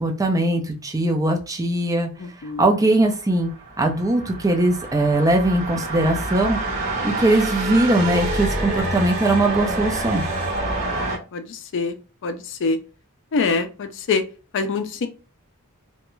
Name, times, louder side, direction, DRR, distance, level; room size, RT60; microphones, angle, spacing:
voice 1, 0.0-2.1 2.6-3.5 3.8-6.6 7.0-10.2, right 2 dB, 15° right, 2 dB, 0.5 m, -20 dB
voice 2, 2.2-2.7 7.0-7.2 10.8-12.0 12.2-12.8 13.3-14.2 14.5-15.1, left 4 dB, 55° left, 8 dB, 0.4 m, -25 dB
sound 1, 3.2-11.2, right 2 dB, 35° right, 1.0 m, -27 dB
2.4 x 2.2 x 3.0 m, 0.34 s
head